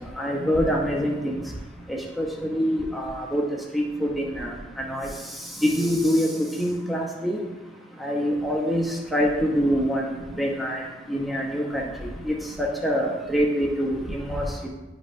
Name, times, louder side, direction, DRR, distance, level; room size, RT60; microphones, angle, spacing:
voice 1, 0.2-1.4 1.9-3.4 3.7-4.5 4.9-5.1 5.6-6.3 6.6-7.4 8.0-11.8 12.2-14.7, equal, ahead, -2 dB, 0.7 m, -25 dB
9.7 x 5.3 x 2.6 m, 1.1 s
head